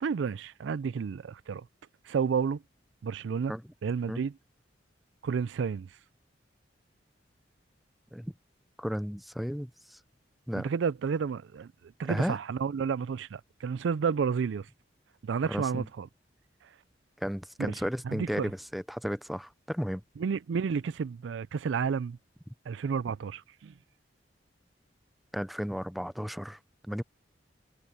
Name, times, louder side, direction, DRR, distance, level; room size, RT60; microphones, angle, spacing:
voice 1, 0.0-1.7 2.1-2.6 3.0-3.5 3.8-4.3 5.2-5.9 10.6-11.7 12.0-14.7 15.2-16.1 17.6-17.7 18.0-18.5 20.2-22.2 22.7-23.7, right 6 dB, 80° right, 0.4 m, -31 dB
voice 2, 8.8-10.0 10.5-10.7 12.1-12.4 15.5-15.9 17.2-20.0 25.3-26.6 26.9-27.0, equal, ahead, 0.4 m, -34 dB
head